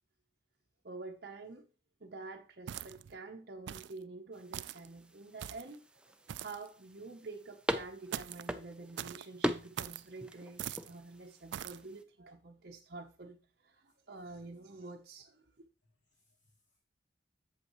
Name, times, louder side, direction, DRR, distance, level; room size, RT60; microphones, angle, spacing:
voice 1, 0.8-1.7 2.0-15.4, right 3 dB, 55° right, 0.8 m, -48 dB
sound 1, 2.7-3.1 3.7-4.0 4.5-4.9 5.4-5.7 6.3-6.7 8.1-8.5 9.0-9.3 9.8-10.1 10.6-10.9 11.5-11.8, right 10 dB, 75° right, 0.3 m, -42 dB
sound 2, 4.3-12.0, equal, 5° right, 0.4 m, -42 dB
voice 2, 15.8-16.8, left 2 dB, 85° left, 1.3 m, -75 dB
8.1 x 7.5 x 3.0 m
head